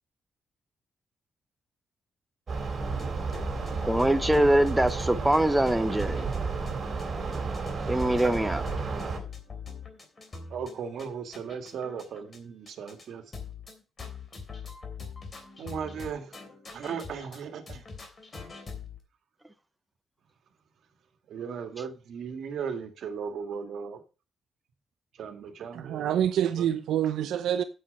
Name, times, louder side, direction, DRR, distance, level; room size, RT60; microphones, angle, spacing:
sound 1, 2.5-9.2, right 4 dB, 40° right, 3.5 m, -32 dB
sound 2, 2.8-6.4 6.7-6.8 7.0-12.4 12.7-13.1 13.3-17.4 17.7-19.0, left 5 dB, 35° left, 3.0 m, -43 dB
voice 1, 3.8-6.3 7.9-8.6, right 1 dB, 5° right, 0.7 m, -23 dB
voice 2, 10.5-13.2 15.6-16.4 16.7-17.8 21.3-24.0 25.2-26.1 26.6-26.7, right 6 dB, 70° right, 1.9 m, -37 dB
voice 3, 25.7-27.6, right 10 dB, 90° right, 0.7 m, -26 dB
8.7 x 8.0 x 5.4 m
cardioid pair, 120°, 0 cm